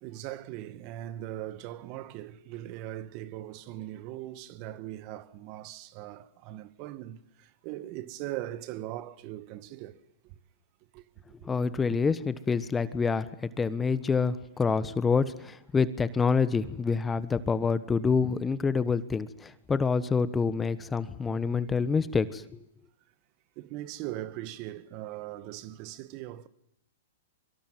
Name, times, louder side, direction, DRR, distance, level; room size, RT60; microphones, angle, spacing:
voice 1, 0.0-10.0 10.2-10.3 10.9-11.0 11.5-11.6 23.6-26.5, right 14 dB, 40° right, 1.7 m, -40 dB
voice 2, 11.4-22.6, left 5 dB, 15° left, 1.3 m, -27 dB
25.0 x 24.5 x 9.3 m
hypercardioid pair, 125°, 0 cm